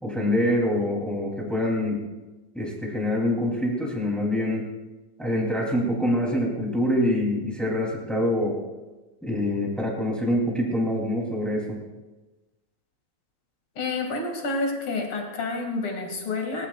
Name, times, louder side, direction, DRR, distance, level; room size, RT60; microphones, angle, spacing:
voice 1, 0.0-2.0 2.5-4.7 5.2-8.6 9.2-11.8, left 1 dB, ahead, -2 dB, 3.0 m, -25 dB
voice 2, 13.8-16.7, left 3 dB, 45° left, 1 dB, 3.2 m, -29 dB
19.5 x 19.0 x 2.5 m, 1.2 s
omnidirectional pair, 3.6 m